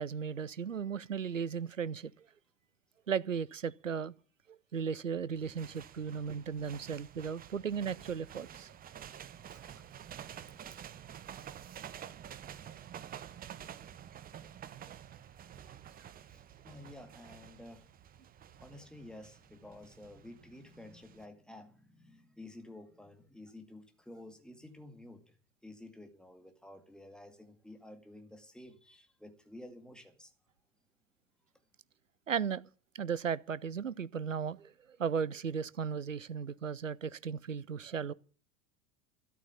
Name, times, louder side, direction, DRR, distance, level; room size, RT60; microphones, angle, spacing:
voice 1, 0.0-2.1 3.1-4.1 4.5-8.7 15.7-16.1 32.3-32.6 32.9-34.7 35.0-38.1, right 7 dB, 85° right, 0.7 m, -36 dB
sound 1, 5.3-21.3, right 9 dB, 25° right, 1.0 m, -50 dB
voice 2, 16.3-17.9 18.6-25.3 25.6-30.3, left 1 dB, ahead, 2.2 m, -52 dB
13.0 x 12.0 x 7.0 m
figure-of-eight pair, 80°, 37 cm